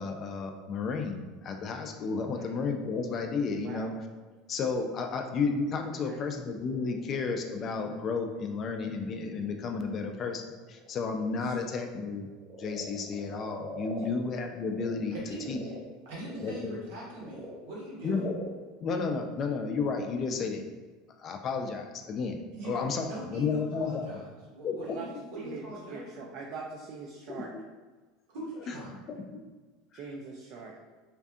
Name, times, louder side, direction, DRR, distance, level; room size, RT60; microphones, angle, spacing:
voice 1, 0.0-3.9 4.5-10.4 10.7-12.3 12.6-15.2 15.5-15.6 16.4-16.8 18.0-18.3 18.8-20.6 21.2-24.2 24.6-25.0 27.3-27.5 28.7-28.8 29.1-29.4, left 4 dB, 40° left, 5 dB, 0.3 m, -32 dB
Frog, 2.5-14.9 15.3-20.0, equal, 10° right, 0.6 m, -48 dB
voice 2, 15.1-15.7 16.0-18.3 22.5-24.2 24.5-26.4 28.3-28.9, right 1 dB, 80° right, -5 dB, 1.2 m, -42 dB
voice 3, 25.9-27.5 29.9-30.7, right 4 dB, 55° right, -1 dB, 0.3 m, -42 dB
2.5 x 2.4 x 2.3 m, 1.3 s
supercardioid pair, 115°, 0 cm